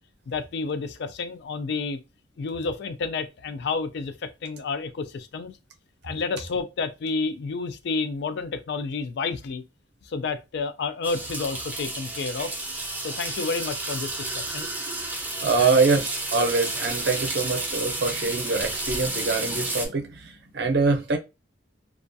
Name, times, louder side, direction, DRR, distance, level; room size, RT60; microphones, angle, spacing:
voice 1, 0.3-2.0 2.4-5.5 6.0-9.6 10.1-12.5 13.0-14.7 15.6-15.8, left 4 dB, 60° left, 0.3 m, -30 dB
sound 1, 11.0-19.9, right 2 dB, 10° right, 0.5 m, -31 dB
voice 2, 15.4-21.2, right 4 dB, 60° right, 0.6 m, -24 dB
2.4 x 2.2 x 2.6 m
head